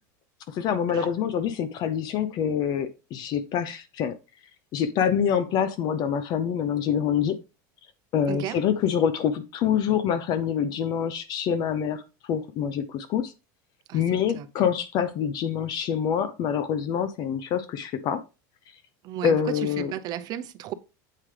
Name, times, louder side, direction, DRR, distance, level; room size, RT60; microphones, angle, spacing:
voice 1, 0.5-4.2 4.7-7.4 8.1-12.0 12.3-13.3 13.9-18.2 19.2-19.9, left 8 dB, 40° left, 0.7 m, -26 dB
voice 2, 8.3-8.6 13.9-14.0 14.3-14.5 19.0-20.7, right 12 dB, 40° right, 0.7 m, -34 dB
7.6 x 4.9 x 3.3 m
supercardioid pair, 140°, 10 cm